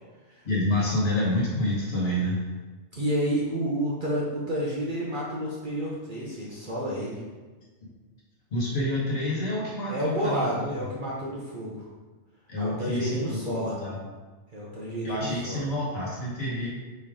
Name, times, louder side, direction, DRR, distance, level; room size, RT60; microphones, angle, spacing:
voice 1, 0.4-2.5 7.8-7.9 8.5-10.8 12.5-14.0 15.0-16.7, left 1 dB, 50° left, -6 dB, 1.5 m, -28 dB
voice 2, 2.9-7.2 9.9-11.9 12.6-13.8 14.5-15.6, right 1 dB, 45° right, -6 dB, 0.7 m, -30 dB
4.5 x 3.2 x 3.6 m, 1.3 s
omnidirectional pair, 1.4 m